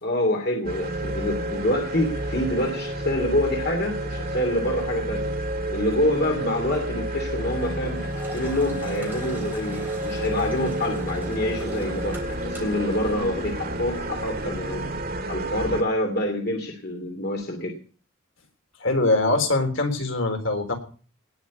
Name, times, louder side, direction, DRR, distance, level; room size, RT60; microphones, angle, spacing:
voice 1, 0.0-5.3 5.7-8.1 8.3-14.9 15.3-17.8, left 1 dB, 50° left, 4 dB, 2.6 m, -26 dB
sound 1, 0.6-15.8, right 1 dB, 45° right, 2.0 m, -30 dB
Engine, 7.4-15.0, right 1 dB, 10° right, 3.3 m, -41 dB
voice 2, 18.8-20.7, left 2 dB, 65° left, 5 dB, 3.6 m, -23 dB
18.5 x 6.3 x 9.3 m, 0.41 s
head